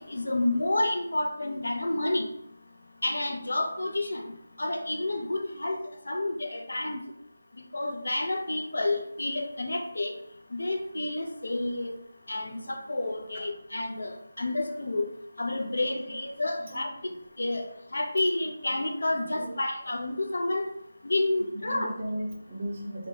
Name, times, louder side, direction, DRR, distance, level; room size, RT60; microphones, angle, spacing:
voice 1, 0.1-2.3 3.0-4.3 4.6-5.8 6.1-7.0 7.7-10.1 10.5-11.9 12.3-15.1 15.4-16.9 17.4-17.6 17.9-20.7 21.0-21.9, left 2 dB, 75° left, 4 dB, 0.8 m, -29 dB
voice 2, 21.7-23.1, right 1 dB, 30° right, 1 dB, 0.7 m, -35 dB
4.6 x 2.4 x 3.7 m, 0.70 s
figure-of-eight pair, 175°, 0 cm